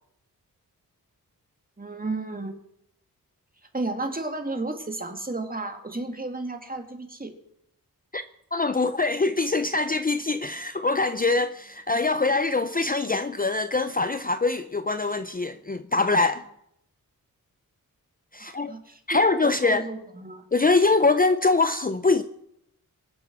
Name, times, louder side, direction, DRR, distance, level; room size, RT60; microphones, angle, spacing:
voice 1, 1.8-2.5 3.7-7.3 18.4-20.4, right 2 dB, 25° right, 2.3 m, -33 dB
voice 2, 8.5-16.5 18.3-18.7 19.1-19.9 20.5-22.2, left 3 dB, 25° left, 0.6 m, -23 dB
23.0 x 7.8 x 6.1 m
cardioid pair, 65°, 36 cm